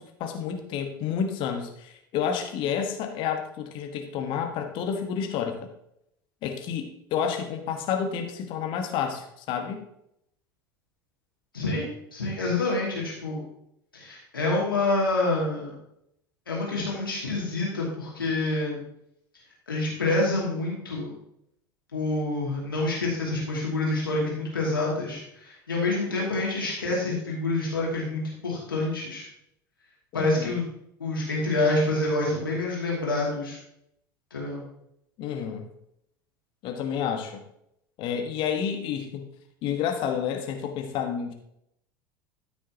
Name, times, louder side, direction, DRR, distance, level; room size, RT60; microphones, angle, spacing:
voice 1, 0.0-5.7 6.4-9.8 30.1-30.6 35.2-35.7 36.6-37.4 38.0-39.2 39.6-41.3, left 7 dB, 45° left, 5 dB, 1.3 m, -30 dB
voice 2, 11.5-13.4 13.9-15.7 16.5-18.8 19.7-21.1 21.9-29.3 30.1-30.6 31.0-33.6 34.3-34.6, left 2 dB, 80° left, -4 dB, 2.5 m, -27 dB
13.5 x 6.2 x 2.9 m, 0.76 s
figure-of-eight pair, 75°, 11 cm